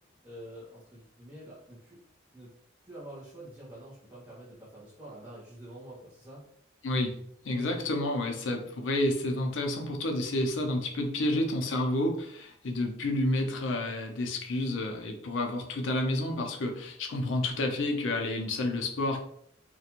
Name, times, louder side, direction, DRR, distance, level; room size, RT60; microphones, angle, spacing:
voice 1, 0.2-2.0 2.3-2.5 2.8-6.4 7.5-7.8 11.2-11.5, right 1 dB, 10° right, -9 dB, 0.7 m, -47 dB
voice 2, 7.4-19.2, left 1 dB, 85° left, 3 dB, 0.5 m, -30 dB
2.5 x 2.2 x 2.8 m, 0.66 s
head